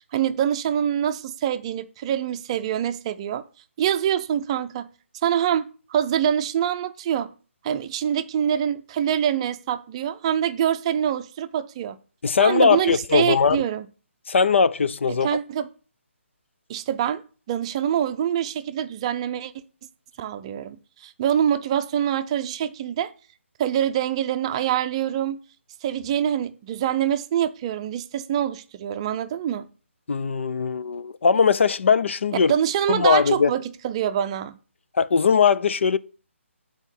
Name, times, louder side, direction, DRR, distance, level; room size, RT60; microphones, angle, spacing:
voice 1, 0.0-3.4 3.8-4.9 5.2-7.3 7.6-12.0 12.4-13.8 15.2-15.7 16.7-17.2 17.5-19.5 20.2-23.1 23.6-25.4 25.8-29.7 32.5-34.6, right 9 dB, 25° right, 0.5 m, -25 dB
voice 2, 12.2-13.6 14.3-15.3 30.1-32.5 32.9-33.5 34.9-36.0, left 6 dB, 65° left, 0.5 m, -20 dB
8.1 x 4.3 x 7.1 m
figure-of-eight pair, 150°, 7 cm